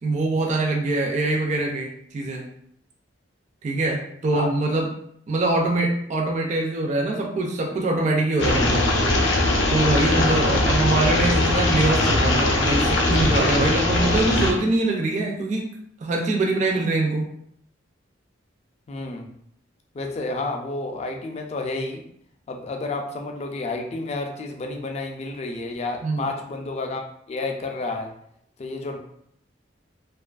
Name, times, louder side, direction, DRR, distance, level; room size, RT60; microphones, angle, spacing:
voice 1, 0.0-2.5 3.6-4.9 5.3-8.9 9.3-9.4 9.7-15.6 16.0-17.3 26.0-26.2, right 2 dB, 40° right, 0 dB, 0.3 m, -23 dB
sound 1, 8.4-14.5, left 2 dB, 90° left, 0.5 m, -21 dB
voice 2, 10.1-10.6 18.9-19.3 19.9-22.0 22.5-28.1 28.6-29.0, left 2 dB, 35° left, 4 dB, 0.3 m, -30 dB
2.5 x 2.3 x 2.3 m, 0.70 s
head